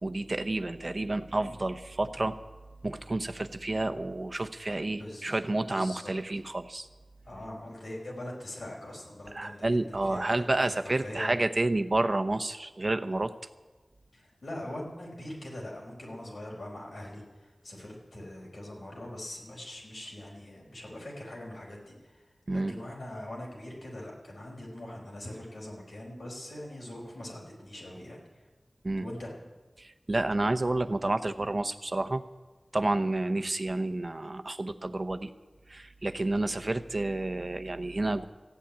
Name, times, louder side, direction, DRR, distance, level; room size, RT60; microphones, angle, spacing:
voice 1, 0.0-2.4 2.8-6.9 9.3-13.3 22.5-22.7 28.8-29.0 29.8-32.2 32.7-35.3 35.7-38.2, right 2 dB, 45° right, 10 dB, 0.8 m, -30 dB
voice 2, 5.0-5.3 5.7-6.1 7.2-11.4 14.1-28.5 29.0-29.3, left 1 dB, 85° left, -3 dB, 5.0 m, -42 dB
14.5 x 8.5 x 8.9 m, 1.2 s
cardioid pair, 40°, 0 cm